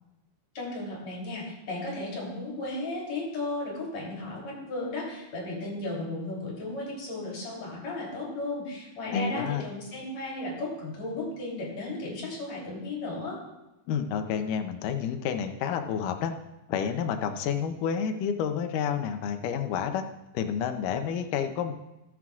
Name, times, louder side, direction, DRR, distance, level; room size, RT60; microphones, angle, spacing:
voice 1, 0.5-13.4, left 2 dB, 55° left, -4 dB, 4.3 m, -35 dB
voice 2, 9.1-9.6 13.9-16.3 16.7-20.0 20.3-21.7, left 7 dB, 85° left, 6 dB, 2.3 m, -29 dB
19.5 x 7.6 x 2.4 m, 0.97 s
omnidirectional pair, 3.7 m